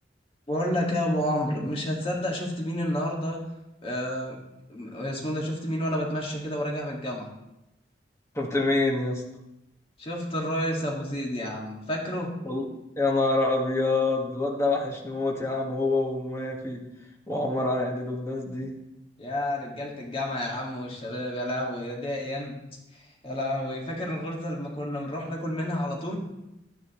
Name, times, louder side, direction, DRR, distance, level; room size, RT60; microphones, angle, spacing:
voice 1, 0.5-3.4 3.8-4.4 4.7-7.3 10.0-12.3 19.2-22.5 22.9-26.2, left 1 dB, 35° left, -1 dB, 2.0 m, -30 dB
voice 2, 8.3-9.2 12.4-12.7 13.0-16.8 17.3-18.7, left 2 dB, 15° left, -2 dB, 1.6 m, -26 dB
11.5 x 10.0 x 3.1 m, 0.91 s
head